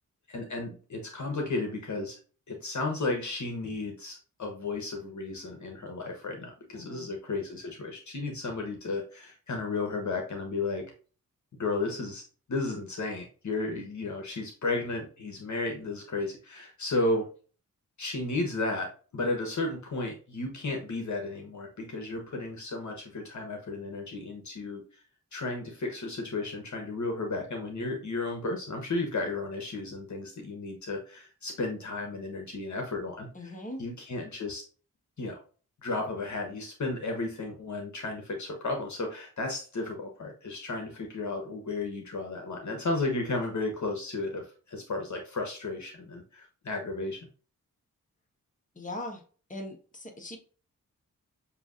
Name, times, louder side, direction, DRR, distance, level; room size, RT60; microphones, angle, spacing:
voice 1, 0.3-2.2 2.5-10.8 11.6-12.2 12.5-17.3 18.0-24.8 25.3-33.5 33.8-34.6 35.2-35.4 35.8-47.3, left 2 dB, 55° left, 2 dB, 1.1 m, -33 dB
voice 2, 6.7-7.1 33.3-33.8 48.7-49.2 49.5-50.4, left 1 dB, 25° left, 2 dB, 1.4 m, -40 dB
6.7 x 2.8 x 2.5 m, 0.39 s
cardioid pair, 60°, 34 cm